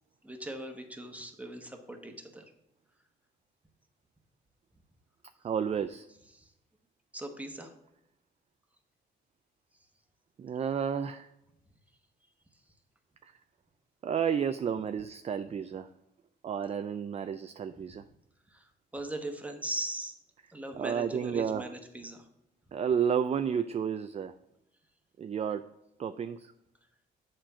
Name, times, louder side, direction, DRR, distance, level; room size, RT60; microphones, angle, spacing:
voice 1, 0.2-2.4 6.3-6.5 7.1-7.7 18.5-18.7 18.9-20.1 20.5-22.3, right 1 dB, 5° right, 4 dB, 1.2 m, -39 dB
voice 2, 5.4-6.1 10.4-11.3 13.2-13.3 14.0-15.9 16.4-18.0 20.7-21.7 22.7-24.3 25.2-25.6 26.0-26.5, right 7 dB, 35° right, 10 dB, 0.4 m, -31 dB
7.6 x 4.4 x 5.6 m, 0.83 s
cardioid pair, 90°, 20 cm